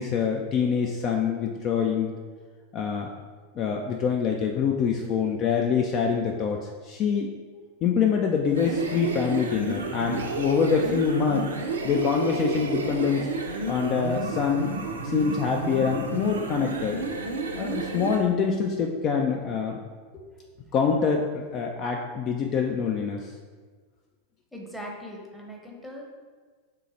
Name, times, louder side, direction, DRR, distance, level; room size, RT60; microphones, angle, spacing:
voice 1, 0.0-2.1 2.7-3.1 3.6-7.3 7.8-11.5 11.8-13.2 13.7-14.7 15.0-17.0 17.5-19.8 20.7-23.3, left 6 dB, 35° left, 2 dB, 0.3 m, -25 dB
sound 1, 8.5-18.3, right 3 dB, 70° right, 0.5 m, -31 dB
voice 2, 24.5-26.0, equal, 5° left, -1 dB, 0.8 m, -40 dB
3.8 x 3.2 x 4.2 m, 1.5 s
figure-of-eight pair, 90°, 0 cm